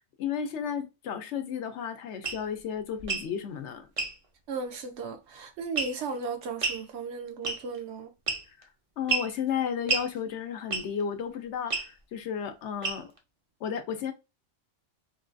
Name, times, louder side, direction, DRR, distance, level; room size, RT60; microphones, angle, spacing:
voice 1, 0.0-3.9 8.5-8.7 9.0-13.1 13.6-14.1, left 7 dB, 70° left, 0.9 m, -33 dB
sound 1, 2.2-2.4 3.0-3.3 4.0-4.1 5.8-6.1 6.6-6.8 7.4-7.8 8.3-8.6 9.1-9.3 9.9-10.1 10.7-11.0 11.7-11.9 12.8-13.2, right 4 dB, 40° right, 0.5 m, -30 dB
voice 2, 4.5-8.1, right 4 dB, 70° right, 0.9 m, -35 dB
3.1 x 2.3 x 2.5 m
omnidirectional pair, 1.3 m